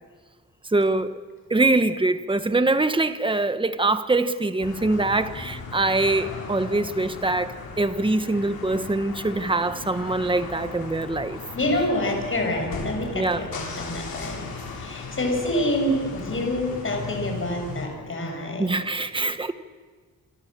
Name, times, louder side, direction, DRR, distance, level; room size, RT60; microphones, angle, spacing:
voice 1, 0.7-1.2 1.5-11.4 11.7-11.8 13.1-13.5 18.6-19.5, right 2 dB, 15° right, 1.2 m, -23 dB
sound 1, 4.6-17.9, left 4 dB, 70° left, 7.1 m, -37 dB
voice 2, 11.5-18.7, left 1 dB, 35° left, 7.4 m, -27 dB
27.5 x 23.0 x 7.6 m
wide cardioid pair, 140°, 37 cm